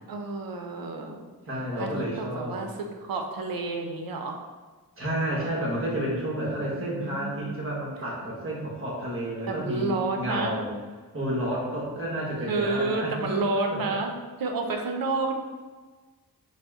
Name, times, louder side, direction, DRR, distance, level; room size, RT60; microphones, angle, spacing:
voice 1, 0.1-1.2 1.8-2.7 3.0-4.4 6.6-7.6 9.5-10.6 12.5-14.1 14.4-15.3, right 3 dB, 80° right, 3 dB, 0.6 m, -30 dB
voice 2, 1.5-2.7 5.0-10.7 11.1-13.4 13.7-13.9, right 1 dB, 40° right, -5 dB, 1.1 m, -30 dB
4.0 x 2.1 x 3.5 m, 1.3 s
cardioid pair, 70°, 35 cm